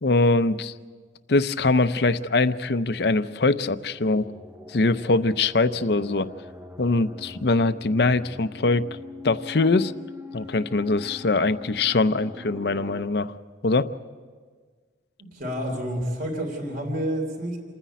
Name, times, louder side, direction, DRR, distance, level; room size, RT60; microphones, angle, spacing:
voice 1, 0.0-0.7 1.3-4.3 4.7-6.3 6.8-8.9 9.2-9.9 10.3-13.3 13.6-13.9, left 3 dB, 60° left, 12 dB, 0.6 m, -22 dB
sound 1, 3.8-13.0, left 3 dB, 10° right, 0.7 m, -43 dB
voice 2, 15.3-17.6, equal, 50° right, 1 dB, 3.3 m, -29 dB
28.0 x 10.0 x 9.3 m, 1.6 s
head